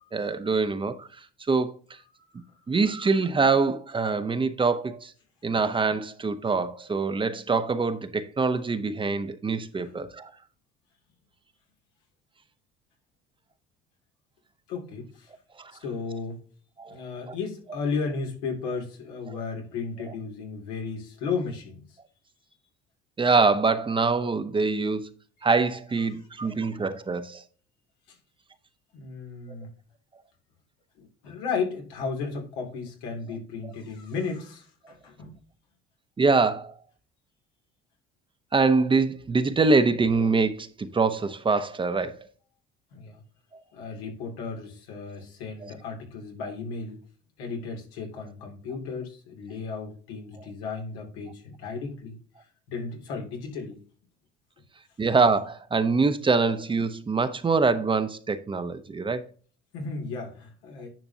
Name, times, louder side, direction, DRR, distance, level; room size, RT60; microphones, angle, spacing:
voice 1, 0.1-1.7 2.7-5.1 5.4-10.3 15.6-15.7 16.8-17.0 17.3-17.4 19.3-19.4 23.2-25.1 25.4-27.4 33.6-33.7 36.2-36.7 38.5-42.3 45.6-45.7 55.0-59.3, right 4 dB, 25° right, 0.8 m, -24 dB
voice 2, 14.7-15.3 15.8-16.4 16.9-21.8 28.9-29.7 31.0-35.3 42.9-43.2 43.7-47.0 47.4-52.1 52.7-53.8 59.7-60.9, left 4 dB, 90° left, 2.5 m, -34 dB
10.5 x 5.8 x 2.7 m
supercardioid pair, 80°, 21 cm